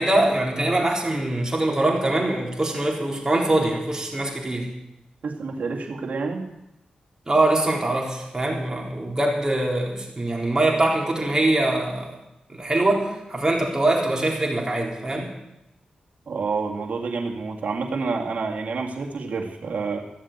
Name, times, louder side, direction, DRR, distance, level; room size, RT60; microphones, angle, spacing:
voice 1, 0.0-4.7 7.3-12.1 12.5-15.3, right 2 dB, 25° right, -2 dB, 3.9 m, -23 dB
voice 2, 5.2-6.5 16.3-20.0, right 4 dB, 70° right, 1 dB, 2.1 m, -28 dB
14.5 x 7.4 x 8.5 m, 0.87 s
cardioid pair, 70°, 3 cm